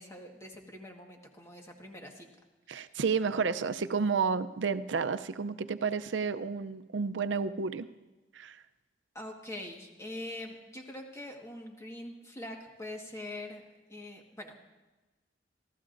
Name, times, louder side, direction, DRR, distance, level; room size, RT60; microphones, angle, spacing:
voice 1, 0.0-2.3 9.1-13.6 13.9-14.6, left 1 dB, 15° left, 1 dB, 1.5 m, -43 dB
voice 2, 2.7-7.9 8.3-8.6, right 5 dB, 80° right, 13 dB, 0.6 m, -31 dB
27.0 x 13.0 x 2.6 m, 1.1 s
head